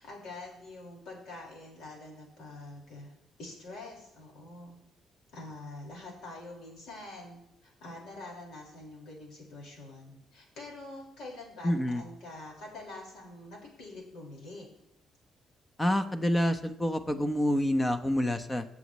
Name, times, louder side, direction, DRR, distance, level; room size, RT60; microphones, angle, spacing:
voice 1, 0.0-3.1 3.4-4.7 5.3-14.7, left 2 dB, 75° left, -2 dB, 5.1 m, -45 dB
voice 2, 11.6-12.0 15.8-18.7, left 1 dB, 15° left, 9 dB, 1.0 m, -27 dB
19.5 x 7.2 x 3.2 m, 0.84 s
cardioid pair, 90°, 0 cm